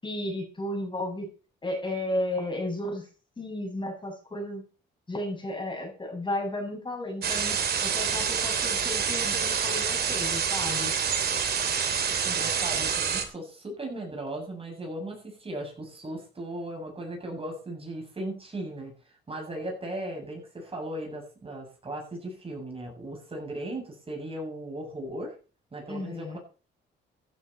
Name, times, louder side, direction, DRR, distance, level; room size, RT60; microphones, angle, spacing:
voice 1, 0.0-1.3 1.6-3.1 3.4-4.6 5.1-10.9 25.9-26.4, left 1 dB, 25° left, 1 dB, 7.2 m, -33 dB
sound 1, 7.2-13.2, right 7 dB, 55° right, 3.1 m, -27 dB
voice 2, 12.2-18.9 19.3-25.3 25.7-26.4, right 1 dB, 30° right, 0 dB, 7.8 m, -37 dB
15.5 x 11.0 x 4.5 m, 0.37 s
cardioid pair, 90°, 20 cm